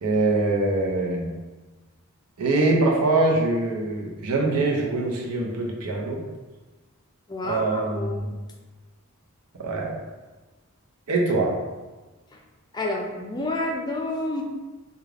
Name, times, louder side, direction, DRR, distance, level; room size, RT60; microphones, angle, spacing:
voice 1, 0.0-1.3 2.4-6.2 7.4-8.3 9.6-9.9 11.1-11.6, right 2 dB, 80° right, 0 dB, 0.7 m, -23 dB
voice 2, 7.3-8.3 12.7-14.4, left 2 dB, 20° left, 1 dB, 0.4 m, -29 dB
3.6 x 2.3 x 3.3 m, 1.2 s
head